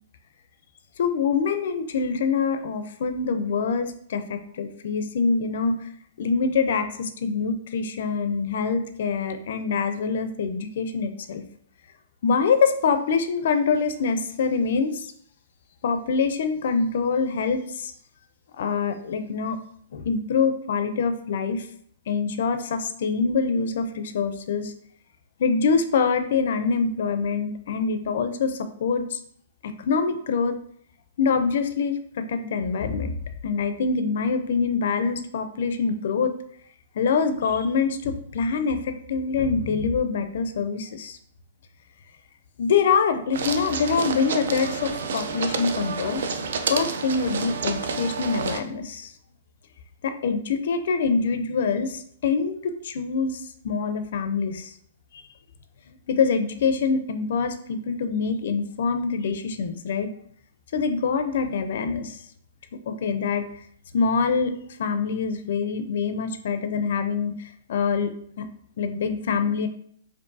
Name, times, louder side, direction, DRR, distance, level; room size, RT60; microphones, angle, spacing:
voice 1, 1.0-5.8 6.2-11.4 12.2-15.1 15.8-17.9 18.5-19.6 19.9-21.7 22.1-24.7 25.4-29.2 29.6-30.6 31.2-33.1 33.4-36.3 37.0-41.2 42.6-46.2 46.7-49.1 50.0-54.7 56.1-60.1 60.7-62.2 62.9-63.4 63.9-64.5 64.8-68.5 68.8-69.7, left 5 dB, 65° left, 8 dB, 0.4 m, -25 dB
sound 1, 43.3-48.6, right 4 dB, 70° right, 0.4 m, -29 dB
4.6 x 2.5 x 2.6 m, 0.63 s
hypercardioid pair, 150°, 0 cm